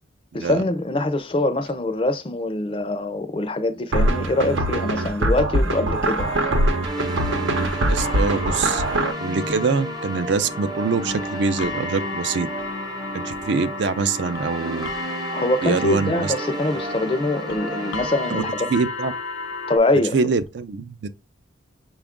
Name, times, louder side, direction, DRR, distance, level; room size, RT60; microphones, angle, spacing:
voice 1, 0.3-6.3 15.3-18.7 19.7-20.2, left 2 dB, 25° left, 0.4 m, -23 dB
sound 1, 3.9-9.1, right 1 dB, 85° right, 0.8 m, -22 dB
sound 2, 6.2-19.8, left 4 dB, 85° left, 0.5 m, -34 dB
sound 3, 6.8-18.4, right 2 dB, 20° right, 0.6 m, -33 dB
voice 2, 7.9-8.8 9.2-12.5 13.1-14.9 15.6-16.3 18.3-18.4 18.7-19.1 20.1-21.1, right 4 dB, 65° right, 0.4 m, -24 dB
6.0 x 2.4 x 3.6 m
head